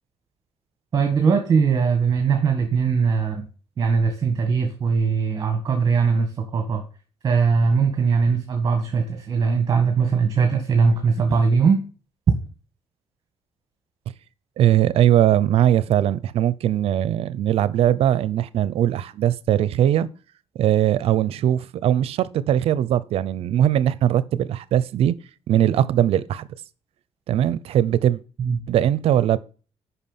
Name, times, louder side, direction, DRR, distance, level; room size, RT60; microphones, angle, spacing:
voice 1, 0.9-3.4 3.8-6.8 7.2-11.8 28.4-28.6, right 5 dB, 35° right, 1.8 m, -20 dB
voice 2, 14.6-20.1 20.5-25.1 25.5-26.5 27.3-28.2 28.7-29.4, right 11 dB, 70° right, 0.7 m, -20 dB
10.0 x 5.8 x 7.4 m
cardioid pair, 160°, 11 cm